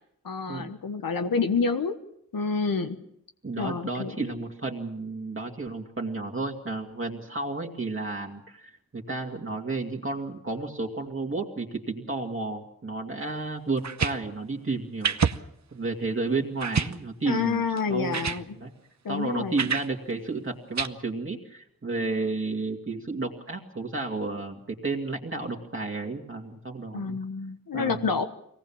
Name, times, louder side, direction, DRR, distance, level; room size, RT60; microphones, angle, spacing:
voice 1, 0.2-2.0 2.3-3.0 3.6-4.3 17.2-18.4 19.0-19.6 26.9-28.2, left 5 dB, 85° left, 7 dB, 1.4 m, -28 dB
voice 2, 3.4-15.2 15.7-17.6 17.9-18.7 19.1-27.2 27.7-28.1, right 3 dB, 35° right, -1 dB, 2.4 m, -32 dB
sound 1, 13.8-14.2 15.0-15.4 15.9-16.0 16.6-17.0 17.8-17.9 18.1-18.4 19.6-19.9 20.8-20.9, right 6 dB, 55° right, 0.9 m, -26 dB
23.0 x 18.5 x 7.2 m, 0.73 s
wide cardioid pair, 80°, 34 cm